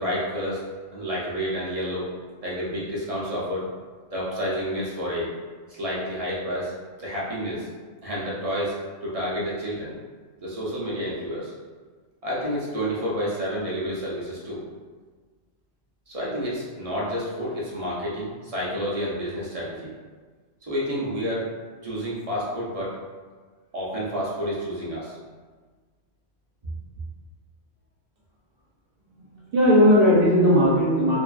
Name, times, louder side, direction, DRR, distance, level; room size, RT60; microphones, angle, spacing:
voice 1, 0.0-2.1 2.4-3.7 4.1-5.3 5.7-7.7 8.0-10.0 10.4-11.5 12.2-14.6 16.1-19.9 20.6-21.5 21.8-23.0 23.7-25.2, equal, 40° right, -6 dB, 0.6 m, -29 dB
voice 2, 29.1-31.2, equal, 60° right, -6 dB, 0.9 m, -18 dB
2.6 x 2.4 x 2.3 m, 1.5 s
omnidirectional pair, 1.1 m